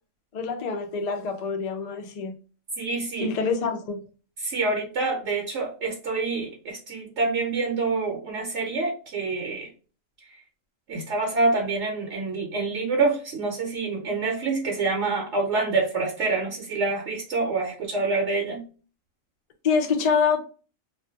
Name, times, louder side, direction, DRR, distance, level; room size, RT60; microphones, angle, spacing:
voice 1, 0.3-2.3 3.2-4.0 19.6-20.4, left 5 dB, 90° left, 0.3 m, -25 dB
voice 2, 2.8-3.3 4.4-9.7 10.9-18.6, right 3 dB, 65° right, 0.9 m, -26 dB
2.3 x 2.2 x 2.6 m
omnidirectional pair, 1.3 m